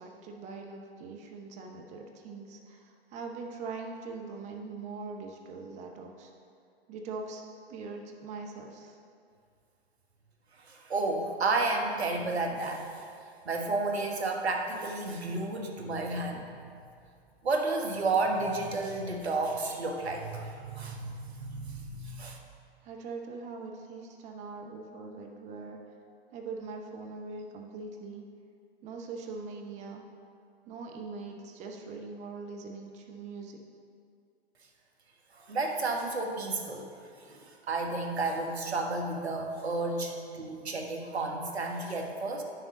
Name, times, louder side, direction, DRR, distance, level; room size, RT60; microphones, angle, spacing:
voice 1, 0.0-6.3 6.9-7.4 7.7-9.0 22.8-25.8 26.3-28.2 28.8-30.0 30.7-33.6, right 4 dB, 20° right, 2 dB, 0.7 m, -42 dB
voice 2, 10.6-12.9 13.4-16.5 17.4-22.4 35.3-36.8 37.1-42.4, right 3 dB, 70° right, 2 dB, 1.4 m, -32 dB
10.5 x 6.5 x 3.7 m, 2.3 s
figure-of-eight pair, 110°, 33 cm